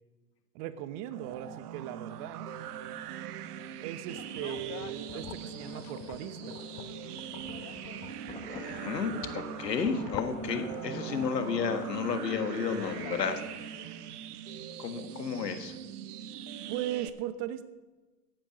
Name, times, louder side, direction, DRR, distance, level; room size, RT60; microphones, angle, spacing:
voice 1, 0.5-2.5 3.8-6.6 16.7-17.6, right 12 dB, 50° right, 12 dB, 1.0 m, -38 dB
sound 1, 1.1-17.1, right 8 dB, 70° right, 1.0 m, -41 dB
sound 2, 4.1-13.4, left 11 dB, 35° left, 0.8 m, -45 dB
Thunder, 8.3-11.3, left 4 dB, 10° left, 1.0 m, -51 dB
voice 2, 8.5-13.7 14.8-15.7, left 6 dB, 90° left, 8 dB, 1.7 m, -32 dB
14.0 x 9.2 x 6.3 m, 1.2 s
hypercardioid pair, 105°, 48 cm